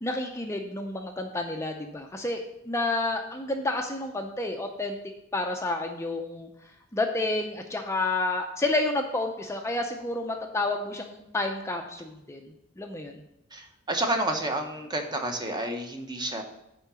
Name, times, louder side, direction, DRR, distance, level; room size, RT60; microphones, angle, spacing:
voice 1, 0.0-5.0 5.3-6.5 6.9-13.2, left 2 dB, 15° left, 3 dB, 0.6 m, -30 dB
voice 2, 13.5-16.4, right 1 dB, 20° right, 4 dB, 0.9 m, -30 dB
9.3 x 3.8 x 6.9 m, 0.84 s
head